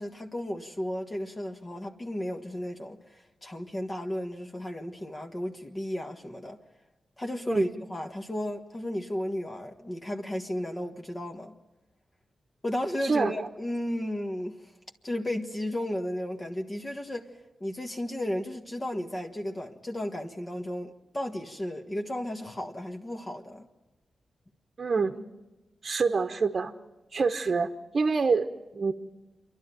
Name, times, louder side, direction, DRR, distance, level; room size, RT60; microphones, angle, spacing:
voice 1, 0.0-6.6 7.2-11.6 12.6-14.7 15.0-17.3 17.6-23.7, left 1 dB, 25° left, 1.6 m, -34 dB
voice 2, 24.8-25.2 25.8-26.7 27.1-28.9, right 4 dB, 50° right, 1.0 m, -26 dB
28.0 x 11.5 x 9.2 m
cardioid pair, 85°, 0 cm